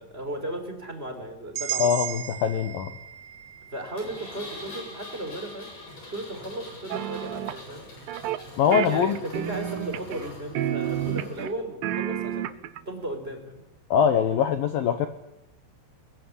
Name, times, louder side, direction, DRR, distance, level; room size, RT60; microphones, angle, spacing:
voice 1, 0.0-1.9 3.7-5.7 6.1-7.9 8.7-12.5 12.9-13.6, right 1 dB, 15° right, 5 dB, 3.9 m, -35 dB
sound 1, 1.6-5.6, right 11 dB, 60° right, 3.8 m, -36 dB
voice 2, 1.8-2.9 8.6-9.2 13.9-15.1, left 7 dB, 70° left, 10 dB, 2.2 m, -22 dB
Engine, 4.0-11.4, left 1 dB, 40° left, 9.3 m, -44 dB
sound 2, 6.9-7.6 8.1-8.4 8.7-10.3 10.5-11.5 11.8-12.8, right 12 dB, 90° right, 2.0 m, -30 dB
22.0 x 21.5 x 9.8 m, 0.87 s
omnidirectional pair, 5.6 m